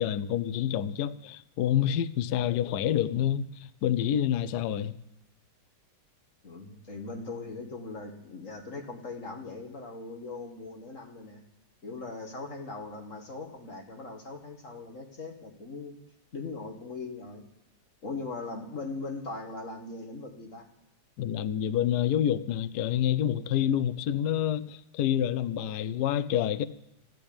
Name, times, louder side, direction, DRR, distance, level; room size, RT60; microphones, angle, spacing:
voice 1, 0.0-4.9 21.2-26.7, left 10 dB, 65° left, 1.1 m, -28 dB
voice 2, 6.4-11.4 11.8-15.9 16.3-17.4 18.0-20.7, left 3 dB, 40° left, 2.1 m, -40 dB
14.5 x 10.0 x 8.7 m
omnidirectional pair, 2.2 m